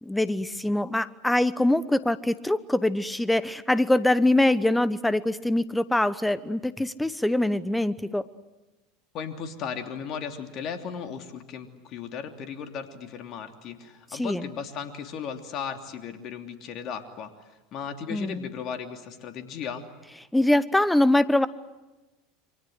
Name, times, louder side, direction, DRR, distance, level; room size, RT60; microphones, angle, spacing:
voice 1, 0.0-8.2 14.1-14.5 18.1-18.4 20.3-21.5, left 1 dB, 5° left, 16 dB, 1.0 m, -23 dB
voice 2, 9.1-19.9, left 7 dB, 50° left, 6 dB, 3.1 m, -36 dB
28.0 x 24.5 x 8.0 m, 1.1 s
hypercardioid pair, 80°, 0 cm